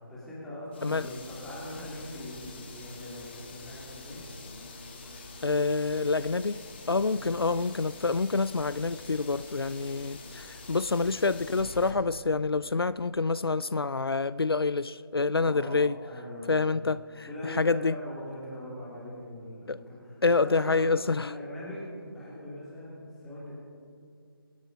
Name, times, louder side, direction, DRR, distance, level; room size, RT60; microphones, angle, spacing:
voice 1, 0.0-4.2 7.1-7.3 15.4-16.7 17.2-20.9 21.2-23.5, left 1 dB, 5° left, -9 dB, 2.9 m, -41 dB
sound 1, 0.7-11.9, left 3 dB, 25° left, 1.9 m, -45 dB
voice 2, 5.4-6.6 6.9-16.0 16.5-18.0 19.7-19.8 20.2-21.3, left 4 dB, 75° left, 17 dB, 0.4 m, -27 dB
25.0 x 8.8 x 5.2 m, 2.3 s
figure-of-eight pair, 160°, 13 cm